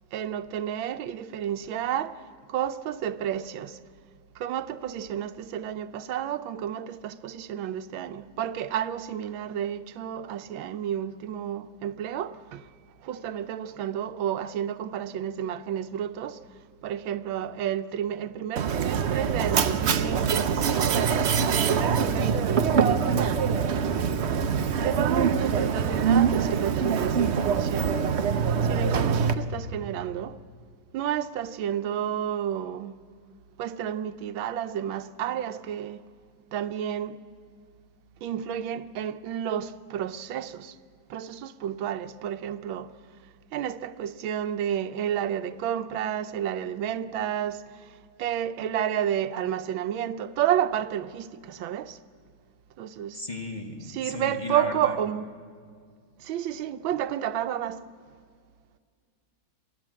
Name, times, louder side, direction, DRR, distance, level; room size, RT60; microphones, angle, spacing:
voice 1, 0.1-2.2 2.5-3.8 4.4-12.7 13.0-16.4 16.8-23.5 24.8-28.0 28.6-30.4 30.9-33.0 33.6-36.0 36.5-37.2 38.2-40.8 41.1-42.9 43.5-52.0 52.8-53.2 53.9-55.2 56.2-57.8, right 10 dB, 85° right, 1.5 m, -31 dB
Mechanisms, 18.6-29.3, right 6 dB, 60° right, 0.7 m, -24 dB
voice 2, 53.1-55.0, left 1 dB, 25° left, 1.5 m, -35 dB
27.0 x 16.5 x 7.6 m
omnidirectional pair, 2.1 m